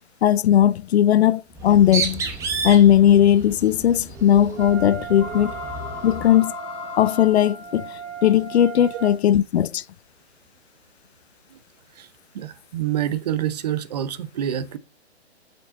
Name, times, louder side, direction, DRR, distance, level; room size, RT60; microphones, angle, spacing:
voice 1, 0.2-2.3 2.6-5.5 6.0-6.5 7.0-9.8, left 10 dB, 70° left, 0.5 m, -18 dB
Bird, 1.5-6.4, right 4 dB, 10° right, 0.9 m, -31 dB
sound 1, 2.8-8.7, left 7 dB, 15° left, 1.1 m, -40 dB
Wind instrument woodwind instrument, 4.5-9.2, right 5 dB, 70° right, 2.4 m, -36 dB
voice 2, 12.3-14.8, right 10 dB, 40° right, 0.8 m, -27 dB
6.7 x 6.5 x 4.0 m
hypercardioid pair, 155°, 33 cm